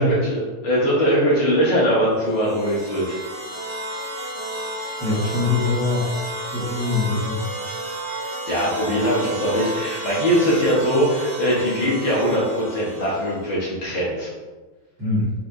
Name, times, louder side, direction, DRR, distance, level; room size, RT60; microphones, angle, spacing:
voice 1, 0.0-3.2 8.2-14.3, equal, 60° left, -6 dB, 1.2 m, -21 dB
sound 1, 2.2-13.5, right 1 dB, 65° right, 1.3 m, -32 dB
voice 2, 5.0-6.1 6.5-7.4 15.0-15.3, left 2 dB, 40° right, -10 dB, 1.9 m, -22 dB
4.7 x 4.3 x 2.6 m, 1.3 s
omnidirectional pair, 3.4 m